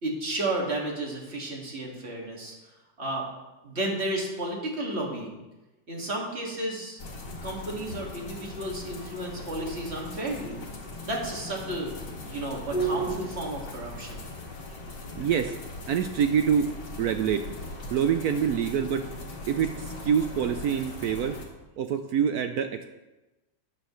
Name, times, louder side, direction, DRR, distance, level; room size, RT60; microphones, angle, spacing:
voice 1, 0.0-2.6 3.0-3.3 3.6-5.4 5.9-7.0 7.4-10.6 11.0-14.2, right 1 dB, 35° right, -1 dB, 2.2 m, -32 dB
sound 1, 7.0-21.5, equal, 65° left, 2.3 m, -38 dB
voice 2, 15.2-15.5 15.9-16.7 17.0-17.5 17.9-19.1 19.5-21.4 21.8-22.8, right 8 dB, 75° right, 7 dB, 0.9 m, -26 dB
13.0 x 9.5 x 3.1 m, 1.1 s
omnidirectional pair, 2.1 m